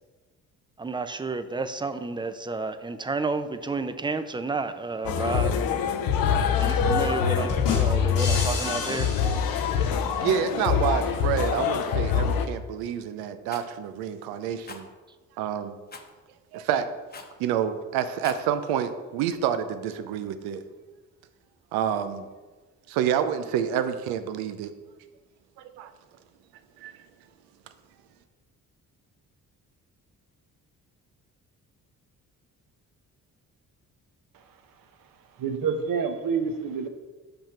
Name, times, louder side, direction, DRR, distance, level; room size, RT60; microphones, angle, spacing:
voice 1, 0.8-5.5 6.6-9.1, right 3 dB, 15° right, 10 dB, 0.5 m, -31 dB
sound 1, 5.0-12.5, left 7 dB, 65° left, 0.7 m, -25 dB
sound 2, 7.5-10.3, left 4 dB, 85° left, 2.2 m, -32 dB
voice 2, 10.2-14.9 15.4-15.7 16.5-16.9 17.4-20.6 21.7-22.3 22.9-24.7 25.8-25.9 26.8-26.9, right 9 dB, 90° right, 10 dB, 0.6 m, -28 dB
Rattle, 13.5-13.7 14.6-14.8 15.9-16.1 17.1-17.4 18.1-18.5, left 3 dB, 25° left, 0.9 m, -42 dB
voice 3, 35.4-36.9, right 6 dB, 60° right, 7 dB, 0.9 m, -27 dB
5.8 x 5.3 x 4.4 m, 1.3 s
supercardioid pair, 60°, 37 cm